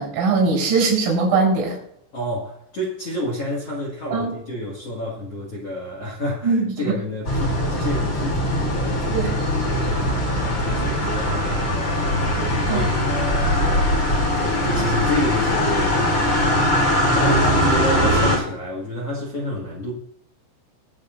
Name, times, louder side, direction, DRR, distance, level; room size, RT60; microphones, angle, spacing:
voice 1, 0.0-1.8 4.1-4.3 6.4-7.0 9.1-9.3 12.7-12.8 14.7-14.9, right 4 dB, 85° right, -1 dB, 6.9 m, -21 dB
voice 2, 2.1-19.9, left 1 dB, 75° left, -2 dB, 1.4 m, -29 dB
sound 1, 7.2-18.4, equal, 30° left, 4.2 m, -21 dB
23.0 x 8.4 x 2.6 m, 0.73 s
omnidirectional pair, 5.9 m